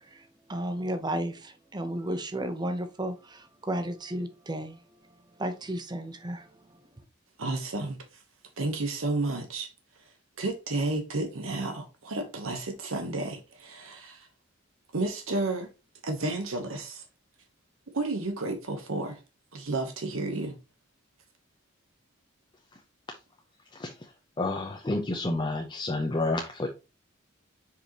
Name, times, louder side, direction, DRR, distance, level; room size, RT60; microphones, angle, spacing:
voice 1, 0.1-4.8 5.4-6.5, right 1 dB, 20° right, 0.8 m, -33 dB
voice 2, 7.4-8.0 8.6-9.7 10.4-14.3 14.9-15.7 16.0-17.0 17.9-19.2 19.5-20.6, right 2 dB, 85° right, 1.0 m, -31 dB
voice 3, 24.4-26.7, left 2 dB, 25° left, 0.7 m, -29 dB
6.7 x 5.0 x 2.9 m
head